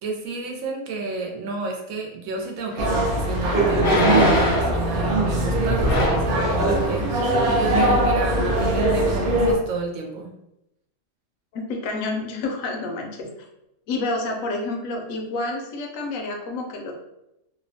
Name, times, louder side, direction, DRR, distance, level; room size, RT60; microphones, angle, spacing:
voice 1, 0.0-10.3, right 4 dB, 80° right, 1 dB, 1.0 m, -31 dB
sound 1, 2.7-2.8 3.8-4.8 5.8-6.3 7.3-7.4 7.7-8.1 8.6-8.7, left 1 dB, 55° left, 0.7 m, -23 dB
sound 2, 2.8-9.5, right 1 dB, 60° right, 0.6 m, -21 dB
voice 2, 11.5-13.3 13.9-16.9, left 2 dB, 80° left, 2 dB, 1.0 m, -29 dB
2.8 x 2.0 x 2.6 m, 0.86 s
omnidirectional pair, 1.4 m